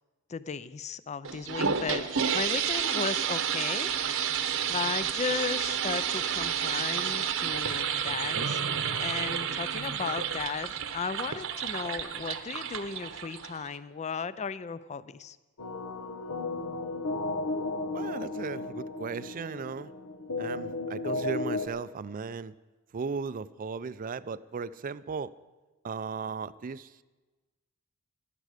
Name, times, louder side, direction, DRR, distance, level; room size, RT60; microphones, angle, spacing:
voice 1, 0.3-2.0 2.3-3.9 4.7-15.4, left 5 dB, 30° left, 16 dB, 0.4 m, -35 dB
sound 1, 1.2-13.8, right 7 dB, 60° right, 0.9 m, -30 dB
sound 2, 15.6-21.7, left 2 dB, 90° left, 1.1 m, -34 dB
voice 2, 17.9-19.9 20.4-22.5 22.9-25.3 25.8-27.0, right 5 dB, 40° right, 16 dB, 0.4 m, -36 dB
15.5 x 12.5 x 5.0 m, 1.2 s
head